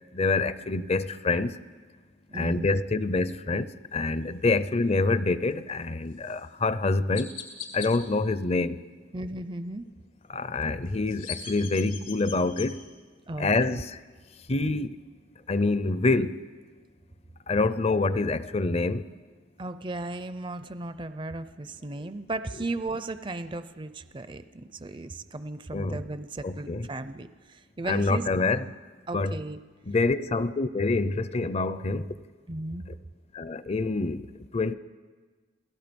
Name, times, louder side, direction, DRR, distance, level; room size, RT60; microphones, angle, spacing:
voice 1, 0.1-1.6 2.3-7.4 7.7-8.8 10.3-12.8 13.4-14.0 14.5-15.0 15.5-16.4 17.5-19.1 25.7-26.0 26.4-26.9 27.8-28.7 29.1-29.4 29.8-32.2 33.3-34.3 34.5-34.7, left 3 dB, 35° left, 0.6 m, -26 dB
voice 2, 2.3-2.7 9.1-9.9 13.3-13.5 19.6-28.2 29.1-29.6 32.5-32.9, right 2 dB, 25° right, 0.5 m, -35 dB
Chirp tweet, 6.2-6.4 7.1-7.9 10.9-12.7, left 8 dB, 85° left, 3.9 m, -39 dB
28.5 x 17.5 x 5.3 m
head